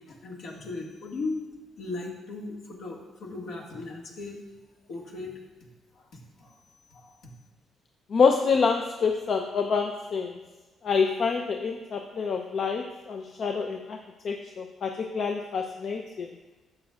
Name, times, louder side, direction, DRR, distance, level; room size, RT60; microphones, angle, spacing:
voice 1, 0.1-1.4 1.8-4.4 4.9-5.4 6.0-6.1 6.4-6.5 6.9-7.3, left 3 dB, 75° left, -1 dB, 1.8 m, -37 dB
voice 2, 8.1-10.4 10.8-14.0 14.2-16.3, left 5 dB, 55° left, 3 dB, 0.6 m, -27 dB
12.5 x 7.6 x 2.4 m, 1.2 s
cardioid pair, 90°, 0 cm